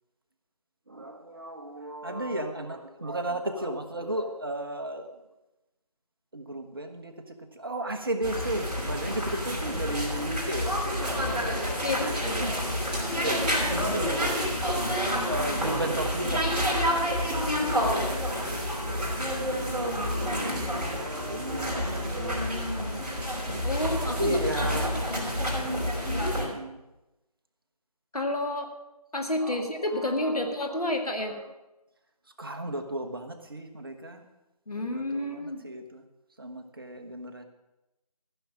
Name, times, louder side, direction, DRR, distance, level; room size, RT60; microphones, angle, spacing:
voice 1, 0.9-5.2 6.3-14.3 15.2-20.0 20.3-22.7 24.1-25.0 26.3-26.8 29.4-31.5 32.4-34.2 34.8-36.0 36.4-37.4, right 1 dB, 35° right, 5 dB, 1.0 m, -35 dB
sound 1, 8.2-26.4, equal, 15° right, 3.7 m, -29 dB
voice 2, 11.8-12.4 23.6-25.2 28.1-28.7 29.1-31.3 34.7-35.6, left 1 dB, 70° left, 3 dB, 2.2 m, -30 dB
14.5 x 6.3 x 7.3 m, 0.98 s
figure-of-eight pair, 165°, 20 cm